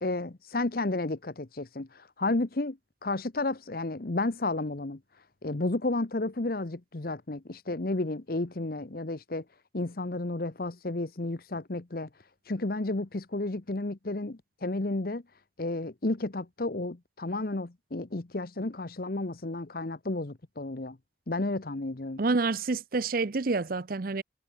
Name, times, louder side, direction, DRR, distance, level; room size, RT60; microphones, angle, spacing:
voice 1, 0.0-9.4 9.7-15.2 15.6-21.0 21.3-22.2, left 2 dB, 50° left, 1.0 m, -32 dB
voice 2, 22.2-24.2, right 3 dB, 50° right, 0.6 m, -28 dB
head